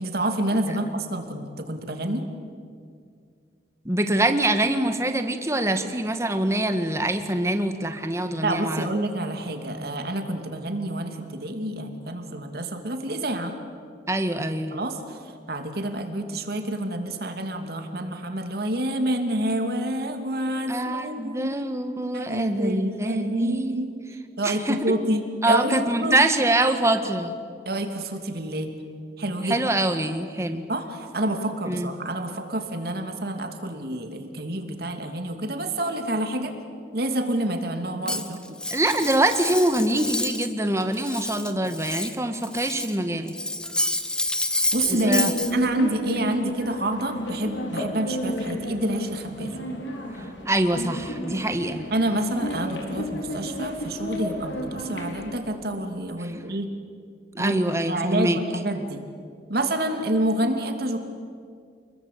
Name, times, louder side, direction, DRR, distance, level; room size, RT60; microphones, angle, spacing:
voice 1, 0.0-2.2 8.4-13.5 14.7-15.2 15.5-21.5 22.1-23.9 24.4-26.2 27.7-28.7 29.2-29.6 30.7-36.5 36.9-38.6 44.7-49.6 51.9-56.7 57.4-59.0 59.5-61.0, right 1 dB, 60° right, 5 dB, 2.7 m, -28 dB
voice 2, 3.8-8.9 14.1-14.8 20.7-23.9 24.4-25.0 25.4-27.3 29.4-30.6 31.7-31.9 38.7-43.4 45.0-45.3 50.2-51.9 56.2-56.3 57.3-58.4, right 1 dB, 15° right, 7 dB, 1.7 m, -24 dB
Cutlery silverware, 38.1-40.5 40.8-43.0 43.3-45.5, left 1 dB, 5° left, 1.1 m, -29 dB
sound 1, 44.7-55.4, equal, 90° left, 4.3 m, -32 dB
29.0 x 21.5 x 8.6 m, 2.2 s
head